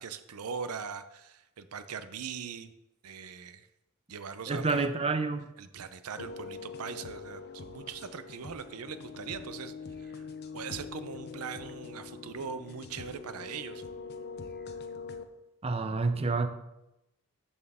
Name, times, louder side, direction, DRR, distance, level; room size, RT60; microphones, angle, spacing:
voice 1, 0.0-2.7 3.0-3.7 4.1-4.9 5.6-9.7 10.0-10.2 10.5-13.8, right 6 dB, 80° right, 11 dB, 0.6 m, -41 dB
voice 2, 4.5-5.5 15.6-16.5, right 3 dB, 25° right, 9 dB, 0.5 m, -28 dB
sound 1, 6.2-15.2, left 4 dB, 50° left, 0.6 m, -43 dB
12.5 x 4.3 x 3.6 m, 0.91 s
head